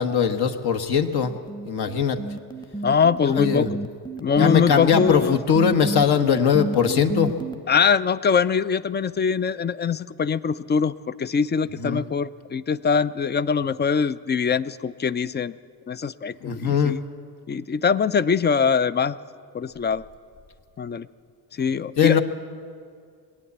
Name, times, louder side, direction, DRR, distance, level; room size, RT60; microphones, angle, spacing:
voice 1, 0.0-1.3 1.6-2.2 3.2-3.7 4.4-7.3 11.8-12.0 16.4-17.0 22.0-22.2, left 7 dB, 60° left, 7 dB, 1.2 m, -21 dB
sound 1, 1.2-7.5, right 2 dB, 10° left, 0.9 m, -30 dB
voice 2, 2.8-3.7 4.2-5.4 7.7-15.5 15.9-17.0 17.5-19.2 19.5-20.0 20.8-21.1 21.5-22.2, left 6 dB, 25° left, 16 dB, 0.4 m, -23 dB
20.0 x 8.6 x 8.1 m, 2.2 s
supercardioid pair, 65°, 44 cm